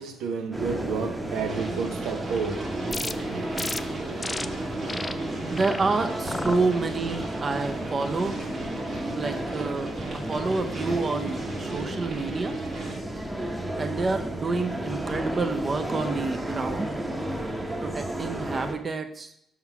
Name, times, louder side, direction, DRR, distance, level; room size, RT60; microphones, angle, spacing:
voice 1, 0.0-2.7 3.3-3.4 6.0-6.1, right 5 dB, 90° right, 0.7 m, -31 dB
sound 1, 0.5-18.7, right 1 dB, 15° right, 0.9 m, -33 dB
sound 2, 1.3-13.0, right 3 dB, 55° right, 1.6 m, -38 dB
sound 3, 2.9-3.1 3.6-3.8 4.2-4.5 4.9-5.1 5.5-5.8 6.3-6.6 7.1-7.4, left 2 dB, 20° left, 0.3 m, -32 dB
voice 2, 5.5-8.4 9.1-12.6 13.8-16.9 17.8-19.3, right 3 dB, 40° right, 0.6 m, -28 dB
5.6 x 3.8 x 5.9 m
cardioid pair, 90°, 0 cm